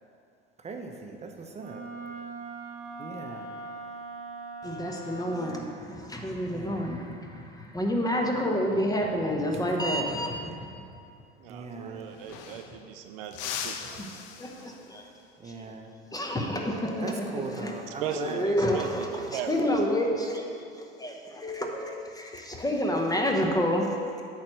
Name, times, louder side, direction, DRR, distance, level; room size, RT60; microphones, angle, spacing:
voice 1, 0.6-1.8 3.0-3.5 6.5-6.9 11.5-12.1 15.4-15.9 17.0-18.4, right 4 dB, 20° right, 3 dB, 0.8 m, -39 dB
Wind instrument woodwind instrument, 1.6-5.6, right 3 dB, 45° right, 1.1 m, -41 dB
voice 2, 4.6-10.7 14.0-14.1 14.4-15.1 15.4-15.5 16.1-17.8 18.2-19.1 19.5-20.5 20.8-24.0, equal, 10° left, 1 dB, 1.0 m, -29 dB
voice 3, 11.4-14.8 17.9-19.9, right 8 dB, 65° right, 6 dB, 0.5 m, -39 dB
sound 1, 11.7-11.8 12.0-12.9 13.3-15.1 17.6-17.9 19.3-19.7, left 8 dB, 65° left, 0.6 m, -40 dB
8.3 x 3.3 x 6.3 m, 2.5 s
figure-of-eight pair, 70°, 31 cm